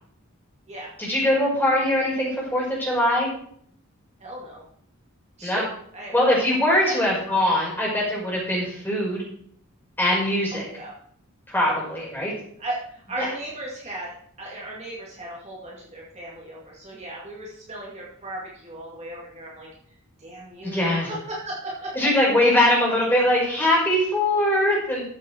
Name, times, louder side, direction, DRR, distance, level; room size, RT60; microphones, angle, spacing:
voice 1, 1.0-3.3 5.4-5.6 6.1-9.2 10.0-10.6 11.5-12.3 13.2-13.3 20.6-21.1 21.9-25.0, left 1 dB, 10° left, -4 dB, 4.9 m, -22 dB
voice 2, 4.2-4.6 5.4-5.6 5.9-6.3 6.8-7.1 10.5-10.9 11.6-12.1 12.6-14.1 14.4-19.7 20.2-22.0, right 1 dB, 30° right, -4 dB, 2.3 m, -36 dB
13.5 x 7.4 x 4.5 m, 0.63 s
head